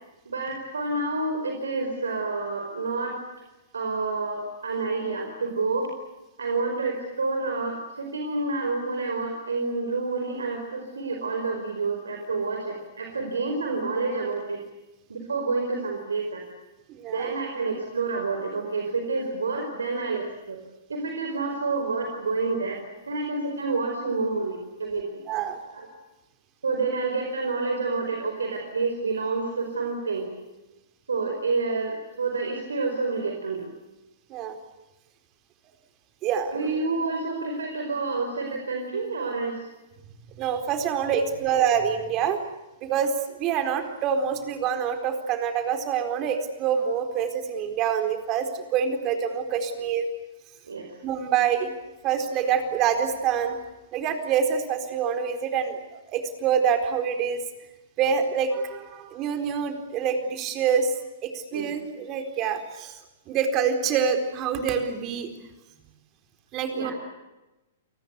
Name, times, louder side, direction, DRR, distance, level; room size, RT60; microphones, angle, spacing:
voice 1, 0.2-3.2 3.7-5.9 6.4-14.6 15.1-16.4 17.1-20.6 20.9-22.8 23.1-25.2 25.7-25.9 26.6-30.3 31.1-33.7 36.5-39.7 42.8-42.9 50.7-51.0 61.5-61.7 66.7-66.9, right 3 dB, 85° right, 3 dB, 4.9 m, -28 dB
voice 2, 16.9-17.3 25.3-25.6 34.3-34.6 36.2-36.5 40.4-42.4 42.8-50.1 51.0-51.7 52.0-53.6 53.9-57.4 58.0-60.9 61.2-63.0 63.3-65.3 66.5-66.9, right 7 dB, 35° right, 6 dB, 4.3 m, -26 dB
29.0 x 19.5 x 8.3 m, 1.0 s
hypercardioid pair, 120°, 0 cm